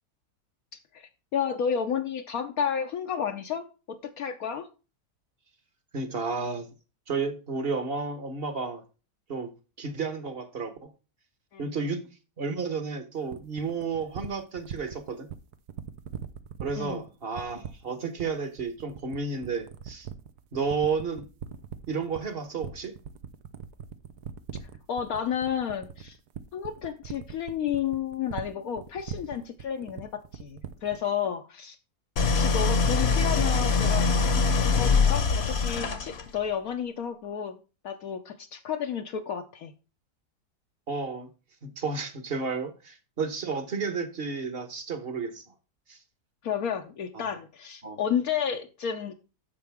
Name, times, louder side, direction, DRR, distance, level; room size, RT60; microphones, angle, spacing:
voice 1, 0.9-4.7 11.5-11.7 16.8-17.0 24.6-26.2 26.5-31.8 32.2-37.6 37.8-39.7 46.4-49.1, left 8 dB, 70° left, 1.2 m, -32 dB
voice 2, 5.9-6.7 7.1-8.8 9.3-9.5 9.8-10.9 11.6-12.0 12.4-15.3 16.6-20.1 20.5-21.2 21.9-22.9 32.3-32.5 40.9-41.3 41.6-45.4 45.9-46.0 47.1-47.2 47.8-48.0, right 4 dB, 40° right, 1.4 m, -32 dB
sound 1, 13.3-31.1, right 9 dB, 85° right, 1.3 m, -40 dB
Idling, 32.2-36.4, left 4 dB, 45° left, 1.1 m, -23 dB
10.5 x 6.8 x 3.5 m
omnidirectional pair, 1.7 m